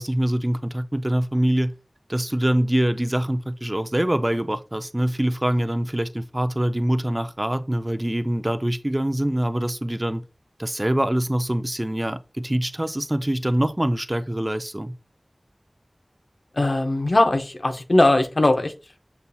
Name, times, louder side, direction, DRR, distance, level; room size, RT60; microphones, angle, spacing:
voice 1, 0.0-1.7 2.1-10.2 10.6-14.9, right 1 dB, 25° right, 0.4 m, -24 dB
voice 2, 16.5-18.7, left 2 dB, 70° left, 0.6 m, -19 dB
6.9 x 2.7 x 2.3 m
wide cardioid pair, 50°, 0 cm